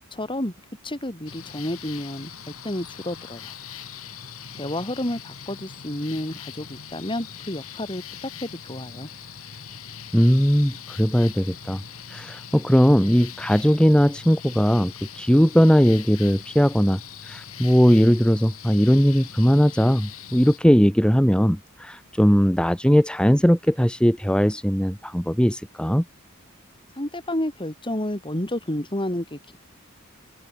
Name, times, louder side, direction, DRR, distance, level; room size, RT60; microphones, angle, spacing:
voice 1, 0.1-0.5 0.8-2.3 2.6-3.5 4.5-9.1 26.9-29.4, left 1 dB, 25° left, 4.8 m, -30 dB
sound 1, 1.3-20.6, left 8 dB, 75° left, 4.6 m, -41 dB
voice 2, 10.1-11.8 12.1-26.0, equal, 5° left, 2.5 m, -19 dB
head